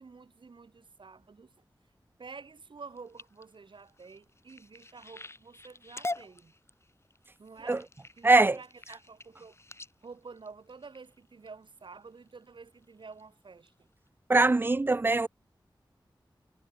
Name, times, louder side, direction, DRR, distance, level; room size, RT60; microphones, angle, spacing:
voice 1, 0.0-1.5 2.2-6.5 7.4-7.9 8.1-9.6 10.0-13.9, right 4 dB, 75° right, 1.4 m, -49 dB
sound 1, 2.8-11.5 12.1-12.4 12.8-13.2 13.7-13.8 14.1-14.2, left 2 dB, 30° left, 1.1 m, -44 dB
voice 2, 8.2-8.6 14.3-15.3, right 3 dB, 25° right, 0.4 m, -22 dB
wide cardioid pair, 70°, 8 cm